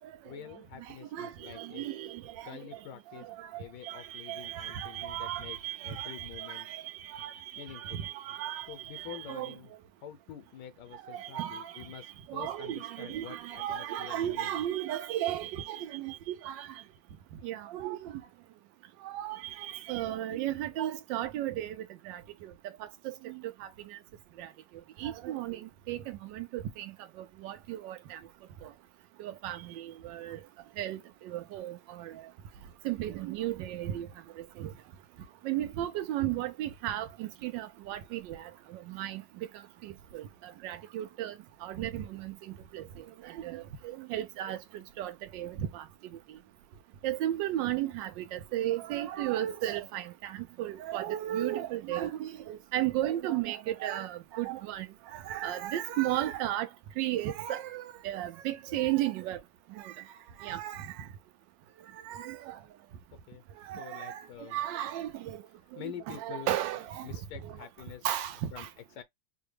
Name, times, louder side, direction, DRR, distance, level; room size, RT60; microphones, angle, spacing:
voice 1, 0.2-1.9 2.4-3.3 3.6-5.6 5.8-6.7 7.6-8.0 8.7-9.7 10.0-14.5 20.3-20.4 63.3-64.6 65.8-66.5 67.0-68.0 68.5-68.7 68.9-69.0, left 9 dB, 75° left, 1.2 m, -47 dB
voice 2, 0.8-2.8 3.1-9.5 10.9-16.8 17.4-18.2 19.0-22.5 22.8-24.0 24.4-24.5 25.0-28.2 28.6-28.7 29.2-30.4 30.8-32.2 32.8-34.1 34.4-34.7 35.4-39.5 39.8-45.8 46.3-46.4 47.0-56.7 57.0-59.4 59.7-60.0 60.4-61.1 62.0-62.6 63.6-65.4 65.7-67.6 68.0-68.7, right 13 dB, 85° right, 1.3 m, -35 dB
4.9 x 2.2 x 3.2 m
omnidirectional pair, 1.9 m